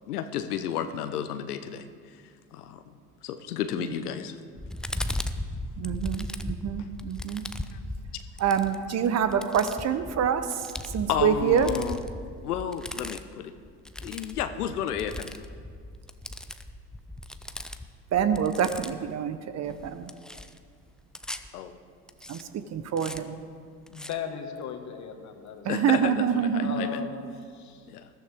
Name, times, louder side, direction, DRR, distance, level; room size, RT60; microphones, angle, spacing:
voice 1, 0.1-2.2 2.5-2.9 3.2-4.4 7.7-7.8 11.1-12.0 12.4-13.5 14.0-15.3 21.5-21.8 25.7-27.0 27.9-28.1, left 9 dB, 70° left, 10 dB, 0.9 m, -32 dB
sound 1, 4.6-19.1 19.6-21.5 22.1-22.4 23.0-23.2 23.9-24.1, left 1 dB, ahead, 0.4 m, -38 dB
voice 2, 5.8-7.4 8.4-11.7 18.1-20.1 22.3-23.4 25.6-26.9, right 8 dB, 35° right, 11 dB, 1.0 m, -26 dB
voice 3, 23.9-25.7 26.6-27.9, left 6 dB, 35° left, 5 dB, 1.8 m, -37 dB
20.5 x 13.5 x 3.6 m, 2.1 s
figure-of-eight pair, 75°, 47 cm